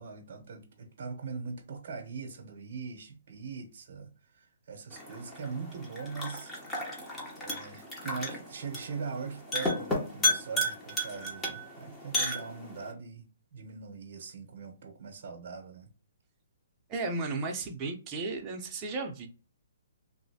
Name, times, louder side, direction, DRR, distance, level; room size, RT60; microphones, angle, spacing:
voice 1, 0.0-13.3 13.5-15.9, right 5 dB, 50° right, 0.8 m, -41 dB
sound 1, 4.9-12.9, left 1 dB, 10° left, 0.8 m, -34 dB
voice 2, 16.9-19.3, right 3 dB, 20° right, 0.7 m, -34 dB
3.1 x 2.7 x 2.8 m
hypercardioid pair, 160°, 0 cm